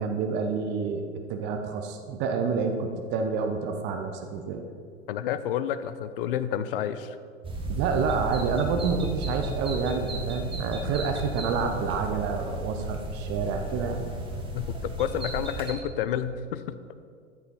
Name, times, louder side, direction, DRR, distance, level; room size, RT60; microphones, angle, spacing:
voice 1, 0.0-4.6 7.7-14.0, right 5 dB, 30° right, 5 dB, 0.7 m, -28 dB
voice 2, 5.1-7.2 14.5-16.6, left 9 dB, 50° left, 13 dB, 0.5 m, -30 dB
sound 1, 7.4-15.7, right 2 dB, 15° right, 1.2 m, -33 dB
13.0 x 5.3 x 4.2 m, 2.2 s
figure-of-eight pair, 95°, 37 cm